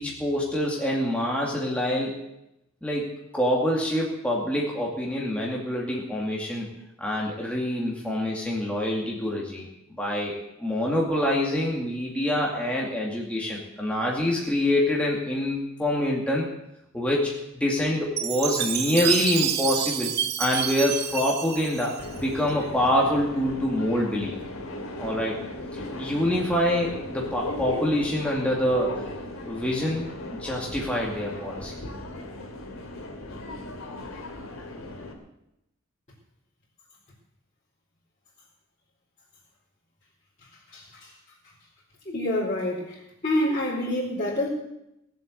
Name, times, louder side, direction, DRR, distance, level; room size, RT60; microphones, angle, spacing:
voice 1, 0.0-2.2 2.8-6.7 7.0-16.5 16.9-20.1 20.4-24.3 25.0-25.4 25.7-29.0 29.5-31.7, left 1 dB, 5° left, -3 dB, 2.3 m, -26 dB
Chime, 18.2-22.5, right 10 dB, 50° right, 1.0 m, -28 dB
Subway metro underground, 22.0-35.1, left 2 dB, 70° left, 2.7 m, -36 dB
voice 2, 42.1-43.0 43.2-44.5, left 1 dB, 35° left, -9 dB, 4.2 m, -26 dB
19.0 x 7.9 x 8.1 m, 0.85 s
head